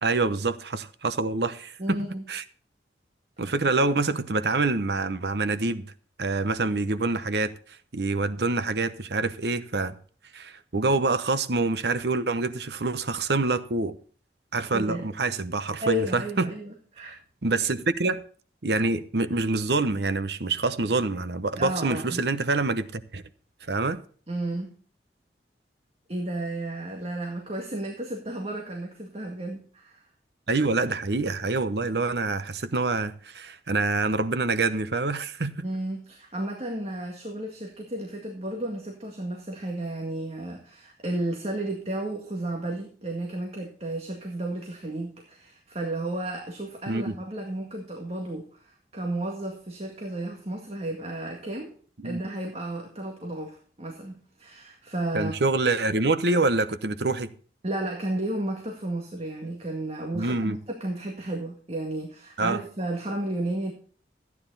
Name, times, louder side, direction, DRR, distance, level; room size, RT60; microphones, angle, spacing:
voice 1, 0.0-1.8 2.3-2.4 3.4-5.8 6.2-7.5 7.9-10.0 10.3-13.9 14.5-16.5 17.0-17.2 17.4-18.2 18.6-23.2 23.7-24.0 30.5-35.7 46.9-47.1 52.0-52.2 55.1-57.3 60.1-60.6 62.4-62.6, right 3 dB, 70° right, 0.9 m, -26 dB
voice 2, 1.8-2.2 14.7-15.1 15.8-17.2 21.6-22.2 24.3-24.7 26.1-30.0 35.6-51.7 52.0-55.3 57.6-63.7, right 1 dB, 35° right, 2.0 m, -33 dB
14.0 x 9.6 x 4.0 m
head